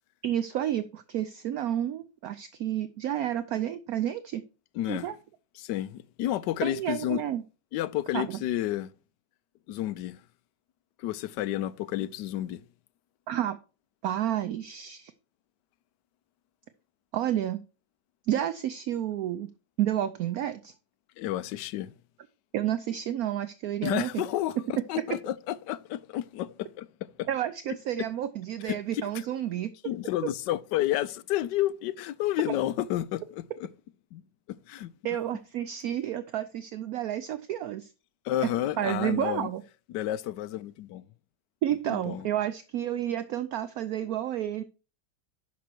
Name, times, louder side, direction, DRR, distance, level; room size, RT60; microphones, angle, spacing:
voice 1, 0.2-4.4 4.8-5.2 6.6-7.4 8.1-8.4 13.3-13.6 14.0-15.1 17.1-17.6 18.3-19.5 19.8-20.7 22.5-24.3 27.3-29.7 35.0-37.9 38.8-39.6 41.6-44.6, right 11 dB, 75° right, 0.8 m, -30 dB
voice 2, 4.7-5.1 5.6-7.2 7.7-8.9 9.7-10.2 11.0-12.6 21.2-21.9 23.8-26.9 27.2-27.3 28.6-28.8 29.0-29.1 29.8-33.7 34.1-34.2 34.5-34.9 38.2-39.5 39.9-41.0 41.9-42.3, left 13 dB, 70° left, 1.1 m, -31 dB
10.5 x 6.1 x 4.4 m
omnidirectional pair, 2.1 m